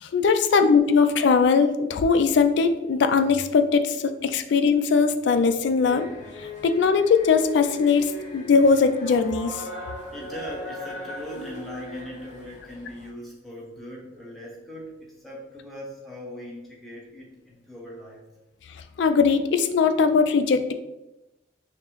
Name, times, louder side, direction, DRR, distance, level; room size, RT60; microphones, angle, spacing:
voice 1, 0.0-6.1 6.4-9.7 18.7-20.7, left 5 dB, 65° left, 8 dB, 0.3 m, -20 dB
sound 1, 5.8-13.1, left 3 dB, 35° left, 1.2 m, -38 dB
voice 2, 10.1-18.2, equal, ahead, -4 dB, 0.8 m, -40 dB
5.8 x 2.0 x 3.0 m, 0.96 s
head